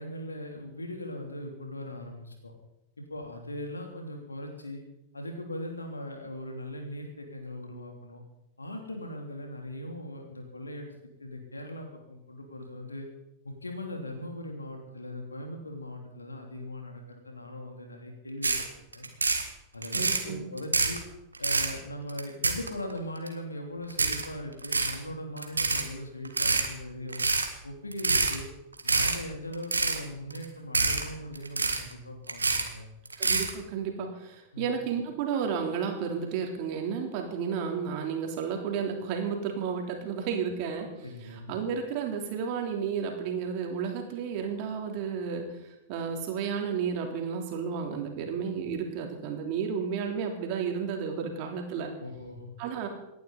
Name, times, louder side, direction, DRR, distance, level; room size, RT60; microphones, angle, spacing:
voice 1, 0.0-2.5 3.0-4.8 5.1-8.2 8.6-10.9 11.2-13.1 13.4-18.5 18.9-19.1 19.7-21.0 21.4-27.2 27.6-28.5 28.8-32.9 34.5-34.7 41.0-41.5 52.0-52.5, left 1 dB, 80° left, 2 dB, 3.2 m, -39 dB
sound 1, 18.4-18.6 18.9-19.4 19.8-20.2 20.6-21.0 21.4-21.7 22.1-22.9 23.3-23.4 23.9-24.3 24.6-24.9 25.4-25.8 26.3-26.7 27.1-27.5 27.9-28.4 28.7-29.2 29.5-30.0 30.3-30.5 30.7-31.0 31.4-31.9 32.3-32.7 33.1-33.5, right 3 dB, 80° right, 1.8 m, -26 dB
voice 2, 19.9-20.5 33.2-40.9 41.2-51.9 52.6-52.9, right 6 dB, 45° right, 2 dB, 3.3 m, -32 dB
27.5 x 11.0 x 4.2 m, 0.88 s
figure-of-eight pair, 90°, 0 cm